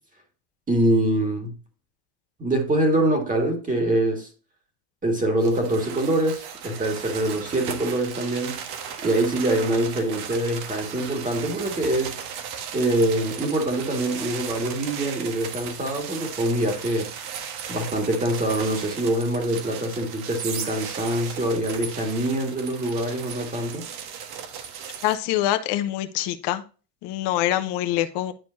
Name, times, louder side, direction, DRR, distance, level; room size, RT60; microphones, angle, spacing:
voice 1, 0.7-1.5 2.4-4.3 5.0-8.6 9.0-12.2 12.7-17.1 17.7-23.9, right 1 dB, 15° right, 2.1 m, -24 dB
sound 1, 5.4-25.2, right 8 dB, 50° right, 1.5 m, -36 dB
voice 2, 25.0-26.6 27.0-28.3, left 13 dB, 55° left, 1.1 m, -25 dB
10.5 x 4.4 x 2.7 m
supercardioid pair, 120°, 50 cm